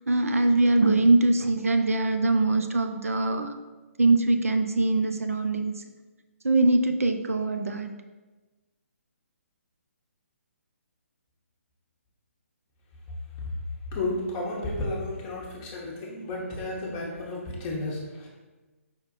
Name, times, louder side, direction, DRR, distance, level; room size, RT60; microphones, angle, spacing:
voice 1, 0.1-3.5 4.0-5.8 6.4-7.9, right 2 dB, 75° right, 7 dB, 0.4 m, -22 dB
voice 2, 13.9-18.3, left 2 dB, 25° left, -3 dB, 0.9 m, -32 dB
5.1 x 2.4 x 3.9 m, 1.2 s
figure-of-eight pair, 135°, 8 cm